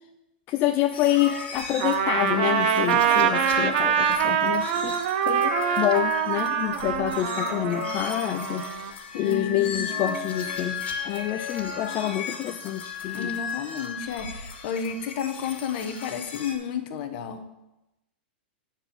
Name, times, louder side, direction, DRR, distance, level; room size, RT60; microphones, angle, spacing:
voice 1, 0.5-5.0 5.3-13.3, left 13 dB, 35° left, 6 dB, 0.5 m, -27 dB
sound 1, 0.9-16.5, left 5 dB, 85° left, 2.1 m, -34 dB
Trumpet, 1.8-8.9, right 9 dB, 60° right, 0.7 m, -25 dB
voice 2, 9.1-9.9 13.1-17.4, left 6 dB, 55° left, 8 dB, 1.2 m, -32 dB
8.8 x 4.5 x 7.2 m, 0.94 s
hypercardioid pair, 130°, 6 cm